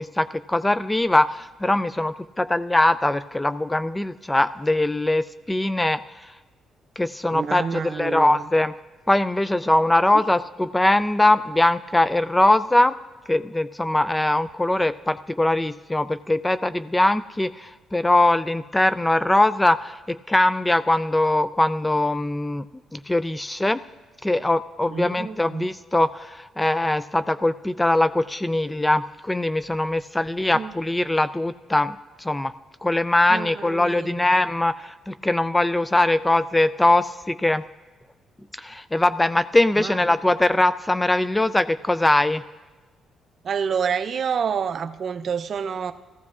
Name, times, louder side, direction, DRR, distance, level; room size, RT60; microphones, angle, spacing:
voice 1, 0.0-6.0 7.0-8.7 9.1-13.0 13.3-22.6 22.9-23.8 24.2-32.5 32.8-37.6 38.6-42.4, left 1 dB, 10° left, 14 dB, 0.3 m, -21 dB
voice 2, 7.3-8.4 24.9-25.7 30.5-30.7 33.3-34.2 39.8-40.2 43.4-45.9, right 6 dB, 55° right, 11 dB, 0.5 m, -28 dB
17.0 x 14.5 x 2.4 m, 1.2 s
cardioid pair, 90°, 0 cm